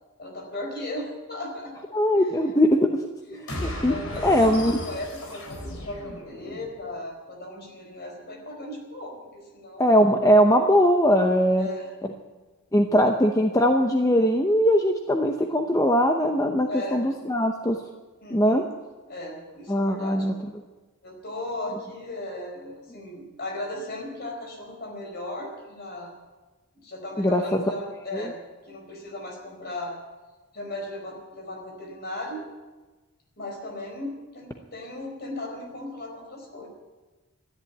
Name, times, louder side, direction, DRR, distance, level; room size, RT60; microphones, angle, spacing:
voice 1, 0.2-2.9 3.3-9.9 11.6-12.3 16.7-17.1 18.2-18.7 19.1-20.3 21.0-26.1 26.8-30.0 30.5-32.4 33.4-36.7, left 1 dB, 45° left, 2 dB, 4.5 m, -37 dB
voice 2, 1.9-2.9 3.3-3.9 4.2-4.8 9.8-11.7 12.7-17.8 18.3-18.6 19.7-20.3 27.2-27.6 28.1-28.3, equal, 15° left, 4 dB, 0.7 m, -21 dB
sound 1, 3.5-6.8, left 1 dB, 70° left, 4.2 m, -35 dB
13.5 x 11.0 x 9.3 m, 1.2 s
head